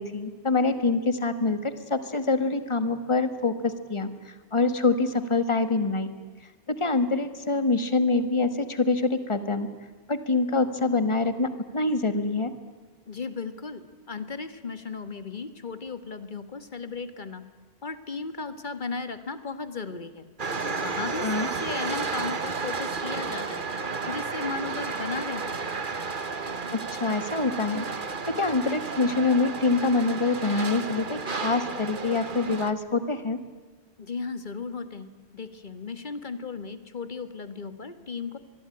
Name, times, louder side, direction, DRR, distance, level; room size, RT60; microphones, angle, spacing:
voice 1, 0.0-6.1 6.7-9.7 10.1-11.5 11.7-12.5 21.2-21.5 26.7-33.4, left 3 dB, 25° left, 11 dB, 1.7 m, -25 dB
voice 2, 13.1-17.5 17.8-20.3 20.6-25.6 34.0-38.4, left 4 dB, 45° left, 11 dB, 1.8 m, -36 dB
sound 1, 20.4-32.7, right 4 dB, 50° right, 1.5 m, -32 dB
25.5 x 21.5 x 9.9 m, 1.4 s
omnidirectional pair, 1.1 m